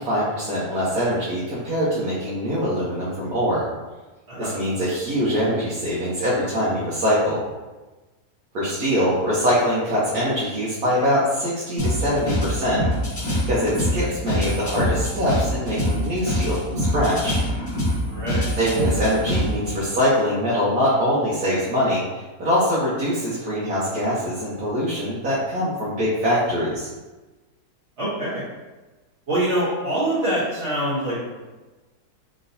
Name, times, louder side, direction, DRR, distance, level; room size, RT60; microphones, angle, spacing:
voice 1, 0.0-3.6 4.4-7.4 8.5-12.8 13.5-17.4 18.6-26.9, equal, 70° right, -9 dB, 1.4 m, -23 dB
voice 2, 4.3-4.6 18.0-18.5 28.0-28.4 29.3-31.4, right 1 dB, 45° right, -12 dB, 1.3 m, -25 dB
sound 1, 11.8-19.8, equal, 30° left, 1.0 m, -25 dB
4.1 x 3.7 x 2.6 m, 1.2 s
omnidirectional pair, 1.7 m